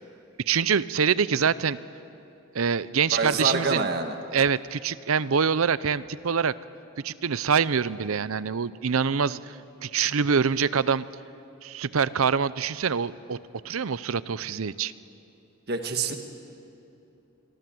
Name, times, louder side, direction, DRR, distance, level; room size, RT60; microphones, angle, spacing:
voice 1, 0.5-1.8 2.5-3.9 4.3-6.5 7.0-11.1 11.6-13.4 13.6-14.9, right 6 dB, 85° right, 17 dB, 0.6 m, -25 dB
voice 2, 3.1-4.2 15.7-16.2, right 3 dB, 50° right, 6 dB, 1.6 m, -26 dB
26.5 x 22.5 x 7.8 m, 2.8 s
head